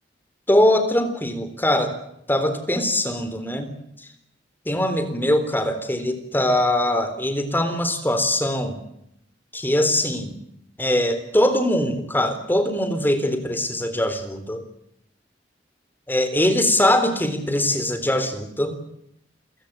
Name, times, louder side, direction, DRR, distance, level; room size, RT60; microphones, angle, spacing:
voice 1, 0.5-1.9 2.3-3.7 4.7-8.8 9.5-10.3 10.8-14.6 16.1-18.7, left 1 dB, 10° left, 9 dB, 3.8 m, -22 dB
29.0 x 16.5 x 9.0 m, 0.77 s
head